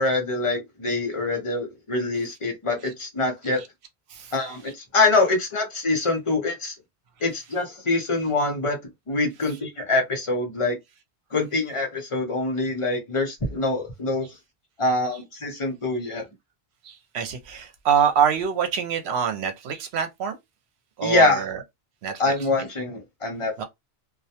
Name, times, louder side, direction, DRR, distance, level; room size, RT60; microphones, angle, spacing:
voice 1, 0.0-3.6 4.3-6.7 7.2-8.8 9.1-10.8 11.3-14.3 14.8-16.2 21.0-21.4 22.2-23.6, left 2 dB, 35° left, 0.7 m, -24 dB
voice 2, 16.8-20.4 21.0-21.6 22.0-22.3 23.6-23.7, right 7 dB, 75° right, 0.9 m, -25 dB
2.2 x 2.2 x 2.7 m
omnidirectional pair, 1.1 m